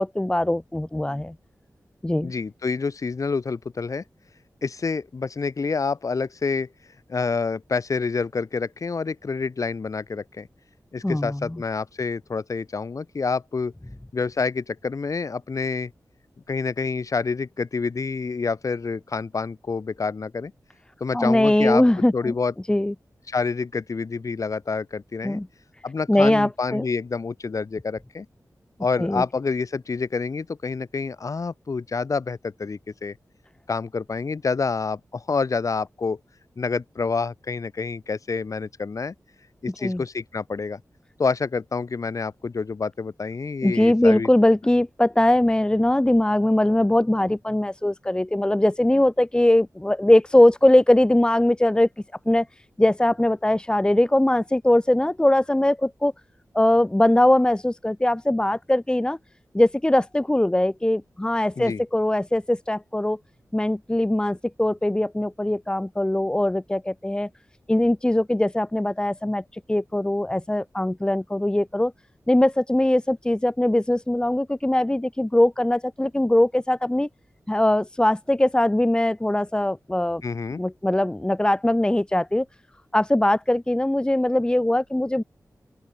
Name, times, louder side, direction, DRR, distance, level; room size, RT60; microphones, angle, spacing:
voice 1, 0.0-1.3 2.0-2.3 11.0-11.6 21.1-22.3 22.7-22.9 25.2-25.5 26.1-26.8 29.0-29.2 39.8-40.0 43.6-51.9 52.3-52.5 52.8-56.1 56.5-59.2 59.5-63.2 63.5-67.3 67.7-71.9 72.3-77.1 77.5-80.2 80.6-82.5 82.9-85.2, left 1 dB, 15° left, 2.3 m, -21 dB
voice 2, 2.2-4.0 4.6-6.7 7.1-10.5 10.9-13.7 14.1-15.9 16.5-20.5 21.0-21.8 22.1-22.5 23.3-25.4 25.8-28.3 28.8-33.2 33.7-36.2 36.6-39.1 39.6-40.8 41.2-44.3 61.6-61.8 80.2-80.6, left 4 dB, 60° left, 3.6 m, -27 dB
open air
wide cardioid pair, 120°, 6 cm